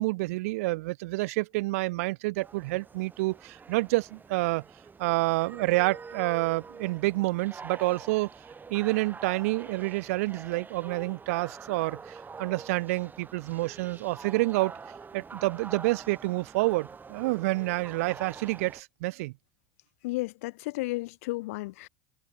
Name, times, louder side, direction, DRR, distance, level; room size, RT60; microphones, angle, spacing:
voice 1, 0.0-4.6 5.0-8.3 8.7-14.7 15.1-19.3, right 22 dB, 75° right, 3.4 m, -28 dB
sound 1, 2.4-18.8, right 5 dB, 25° right, 5.3 m, -46 dB
voice 2, 20.0-21.9, left 21 dB, 75° left, 1.9 m, -33 dB
hypercardioid pair, 90°, 8 cm